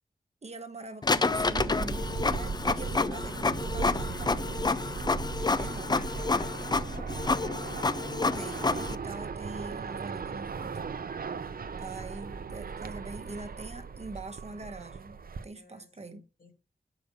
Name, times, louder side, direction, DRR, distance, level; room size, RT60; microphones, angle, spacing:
voice 1, 0.4-4.9 5.6-6.0 8.3-10.8 11.8-16.2, right 3 dB, 45° right, 1.1 m, -43 dB
Printer, 1.0-8.9, left 3 dB, 25° left, 0.4 m, -29 dB
sound 1, 1.3-15.4, right 5 dB, 70° right, 0.6 m, -37 dB
voice 2, 5.9-7.2 15.5-16.5, left 2 dB, 65° left, 2.6 m, -51 dB
6.6 x 5.1 x 6.7 m
wide cardioid pair, 100°, 16 cm